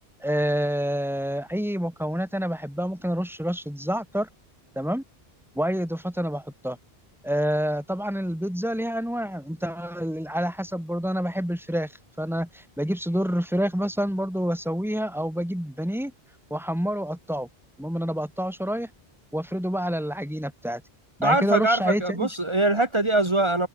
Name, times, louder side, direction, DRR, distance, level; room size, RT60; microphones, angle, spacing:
voice 1, 0.2-4.3 4.8-5.0 5.6-6.8 7.2-11.9 12.2-16.1 16.5-17.5 17.8-18.9 19.3-20.8 21.2-22.3, equal, ahead, 3.9 m, -28 dB
voice 2, 21.2-23.7, right 2 dB, 25° right, 2.3 m, -22 dB
omnidirectional pair, 1.1 m